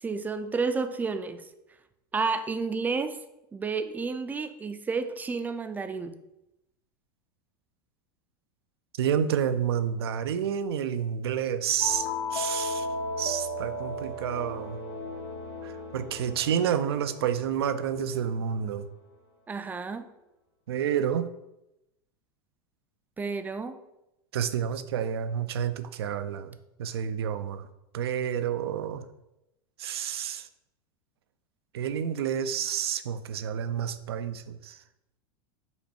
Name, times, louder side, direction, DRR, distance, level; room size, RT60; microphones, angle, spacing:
voice 1, 0.0-1.5 2.1-3.2 3.5-6.2 19.5-20.1 23.2-23.8, right 4 dB, 15° right, 10 dB, 0.4 m, -31 dB
voice 2, 9.0-12.9 13.2-14.8 15.6-18.9 20.7-21.3 24.3-27.7 27.9-29.1 29.8-30.5 31.7-34.8, right 8 dB, 80° right, 11 dB, 0.4 m, -29 dB
sound 1, 11.8-18.3, left 2 dB, 75° left, 1.0 m, -35 dB
5.4 x 2.2 x 4.2 m, 0.89 s
hypercardioid pair, 100°, 13 cm